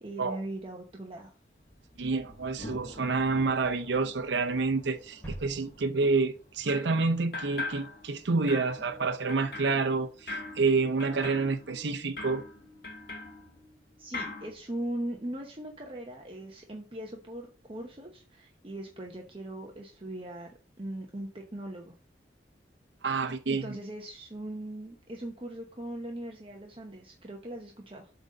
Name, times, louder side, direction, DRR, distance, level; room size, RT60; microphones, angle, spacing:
voice 1, 0.0-1.3 14.0-22.0 23.1-28.1, right 1 dB, 30° right, 0.9 m, -40 dB
Thunder, 1.3-12.8, equal, 40° left, 1.8 m, -51 dB
voice 2, 2.0-12.4 23.0-23.6, right 4 dB, 85° right, 0.7 m, -28 dB
sound 1, 5.2-7.1 7.4-7.5, right 1 dB, 10° left, 2.8 m, -46 dB
sound 2, 6.7-7.0 7.3-8.2 8.5-13.8 14.1-14.5, left 3 dB, 60° left, 1.6 m, -41 dB
7.9 x 3.9 x 5.1 m
head